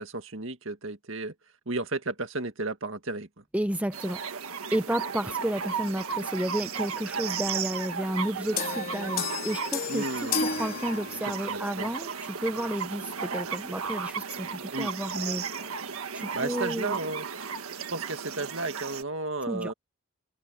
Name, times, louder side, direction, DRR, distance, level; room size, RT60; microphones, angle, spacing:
voice 1, 0.0-1.3 1.7-3.3 9.9-10.4 11.3-11.9 14.7-14.9 16.3-17.3 17.9-19.7, right 2 dB, 65° right, 2.0 m, -33 dB
voice 2, 3.5-4.2 4.7-15.7 16.1-17.0 19.5-19.7, right 1 dB, 5° right, 0.7 m, -32 dB
sound 1, 3.9-19.0, right 6 dB, 85° right, 1.6 m, -35 dB
sound 2, 8.6-11.5, left 6 dB, 45° left, 4.0 m, -32 dB
head